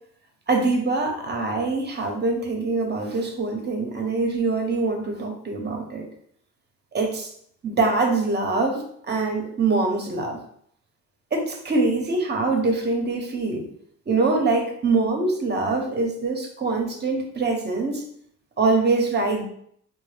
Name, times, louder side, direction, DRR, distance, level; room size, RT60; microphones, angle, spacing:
voice 1, 0.5-6.1 6.9-7.3 7.6-10.4 11.3-13.7 14.1-18.0 18.6-19.5, right 3 dB, 35° right, 3 dB, 0.8 m, -24 dB
4.0 x 2.1 x 3.3 m, 0.65 s
cardioid pair, 90°, 30 cm